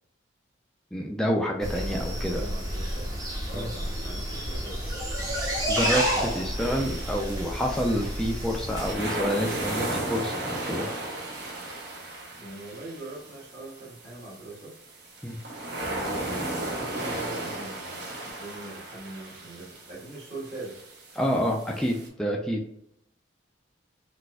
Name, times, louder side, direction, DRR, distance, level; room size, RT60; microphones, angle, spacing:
voice 1, 0.9-2.4 3.5-3.7 5.7-10.9 15.2-15.4 21.1-22.8, equal, 5° left, 0 dB, 0.3 m, -28 dB
sound 1, 1.6-8.9, equal, 20° right, 0.8 m, -30 dB
voice 2, 1.9-3.1 3.5-4.9 6.1-6.3 12.4-14.7 15.6-20.7, right 2 dB, 40° right, -7 dB, 1.4 m, -41 dB
sound 2, 6.6-22.1, right 1 dB, 65° right, 0.9 m, -36 dB
4.0 x 2.5 x 2.2 m, 0.76 s
head